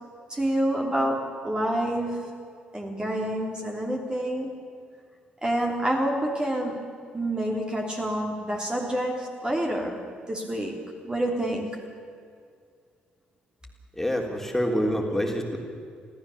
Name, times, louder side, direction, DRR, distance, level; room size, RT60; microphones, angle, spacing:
voice 1, 0.3-2.3 2.7-4.6 5.4-11.8, right 1 dB, 20° right, 0 dB, 3.0 m, -28 dB
voice 2, 14.0-15.6, equal, 5° left, 1 dB, 3.5 m, -26 dB
26.5 x 16.0 x 7.1 m, 2.2 s
figure-of-eight pair, 45°, 4 cm